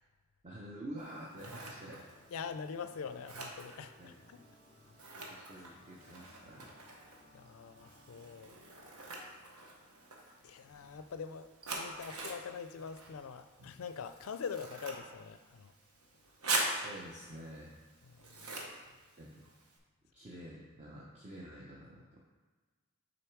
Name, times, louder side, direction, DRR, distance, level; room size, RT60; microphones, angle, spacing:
voice 1, 0.4-2.1 4.0-4.1 5.1-6.7 16.5-17.7 19.1-19.5 20.1-22.2, right 1 dB, 30° right, -4 dB, 0.7 m, -48 dB
Scissors, 1.0-19.8, right 2 dB, 80° right, 1.0 m, -44 dB
sound 1, 1.3-11.2, left 1 dB, 50° right, 1.8 m, -63 dB
voice 2, 2.3-4.5 7.3-8.6 9.1-9.3 10.4-15.7 18.1-18.6, left 6 dB, 65° left, 11 dB, 0.4 m, -44 dB
6.9 x 3.9 x 4.6 m, 1.4 s
head